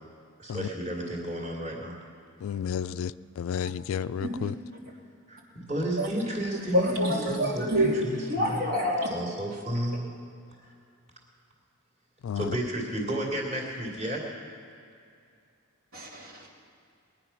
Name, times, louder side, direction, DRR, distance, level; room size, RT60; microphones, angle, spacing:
voice 1, 0.4-1.9 2.8-3.1 5.3-8.7 9.1-10.1 12.3-14.3, right 1 dB, 35° right, -3 dB, 2.9 m, -32 dB
voice 2, 2.4-4.6 12.2-12.5, left 8 dB, 65° left, 16 dB, 0.3 m, -32 dB
voice 3, 3.9-4.5 6.0-6.1 6.7-7.9 8.3-9.1 15.9-16.5, equal, 65° right, -2 dB, 2.9 m, -27 dB
21.0 x 10.0 x 5.9 m, 2.4 s
head